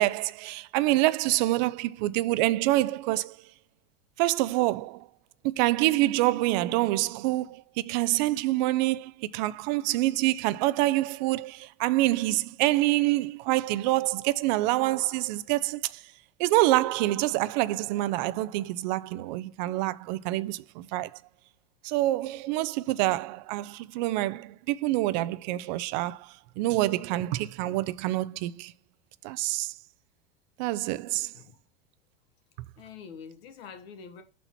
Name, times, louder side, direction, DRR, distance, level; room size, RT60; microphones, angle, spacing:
voice 1, 0.0-3.4 4.2-5.1 5.6-16.0 16.4-21.2 21.8-28.7 29.2-29.7 30.6-31.3, right 17 dB, 50° right, 0.4 m, -26 dB
voice 2, 32.8-34.2, left 6 dB, 85° left, 1.5 m, -45 dB
5.7 x 4.2 x 4.2 m
supercardioid pair, 150°, 30 cm